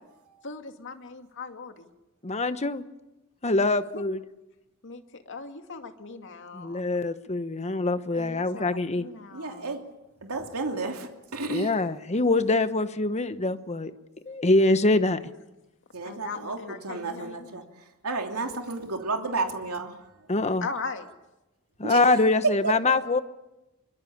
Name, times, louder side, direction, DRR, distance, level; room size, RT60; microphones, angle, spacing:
voice 1, 0.4-1.9 3.6-3.7 3.9-4.1 4.8-6.8 8.1-9.8 16.0-17.6 20.6-21.1, left 4 dB, 60° left, 6 dB, 2.3 m, -39 dB
voice 2, 2.2-2.8 3.4-4.2 6.5-9.0 11.5-13.9 14.3-15.2 20.3-20.6 21.8-23.2, left 2 dB, 30° left, 11 dB, 1.1 m, -24 dB
voice 3, 9.3-9.8 10.2-11.7 15.9-16.6 16.8-17.6 18.0-19.9 21.8-22.0 22.6-22.7, right 3 dB, 80° right, 3 dB, 3.0 m, -31 dB
26.0 x 23.0 x 8.7 m, 0.98 s
head